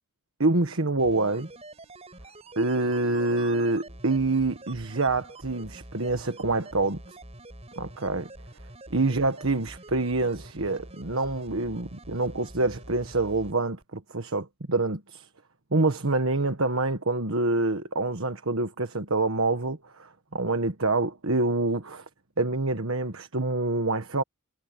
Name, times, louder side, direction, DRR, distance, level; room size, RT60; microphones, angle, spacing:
voice 1, 0.4-1.5 2.6-7.0 7.8-8.3 8.9-15.3 15.7-22.0 22.4-24.2, right 2 dB, 65° right, 1.5 m, -26 dB
sound 1, 1.0-13.5 13.8-13.9, right 1 dB, 30° right, 7.2 m, -46 dB
head